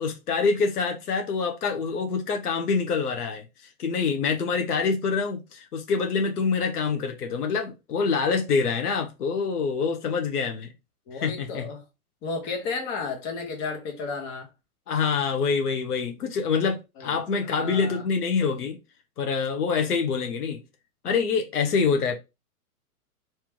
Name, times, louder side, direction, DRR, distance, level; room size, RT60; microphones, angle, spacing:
voice 1, 0.0-3.4 3.8-10.7 11.1-11.7 14.9-18.8 19.2-20.6 21.0-22.2, left 5 dB, 80° left, 0.9 m, -26 dB
voice 2, 11.1-11.8 12.2-14.5 17.0-18.0, left 4 dB, 35° left, 1.3 m, -33 dB
3.1 x 2.8 x 3.6 m
hypercardioid pair, 125°, 45 cm